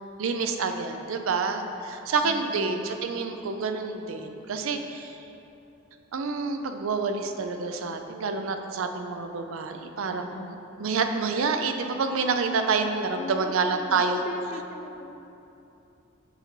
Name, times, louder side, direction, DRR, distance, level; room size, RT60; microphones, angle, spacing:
voice 1, 0.2-5.2 6.1-10.5 10.8-14.3, right 4 dB, 75° right, 6 dB, 0.5 m, -28 dB
voice 2, 2.2-2.9 10.1-10.6 13.1-15.1, left 3 dB, 35° left, 7 dB, 0.3 m, -39 dB
7.0 x 3.9 x 4.5 m, 2.9 s
head